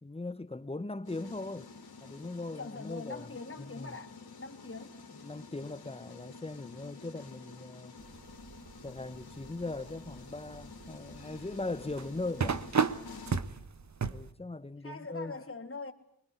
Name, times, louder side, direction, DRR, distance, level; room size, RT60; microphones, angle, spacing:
voice 1, 0.0-1.7 2.0-3.3 3.7-4.0 5.2-8.0 8.8-12.6 14.1-15.4, left 2 dB, 15° left, 1.2 m, -39 dB
sound 1, 1.1-13.4, left 4 dB, 75° left, 3.8 m, -50 dB
voice 2, 2.5-4.9 14.8-15.9, left 3 dB, 35° left, 3.3 m, -43 dB
sound 2, 8.0-14.3, right 5 dB, 45° right, 1.4 m, -36 dB
25.5 x 21.0 x 9.7 m
cardioid pair, 55°, 37 cm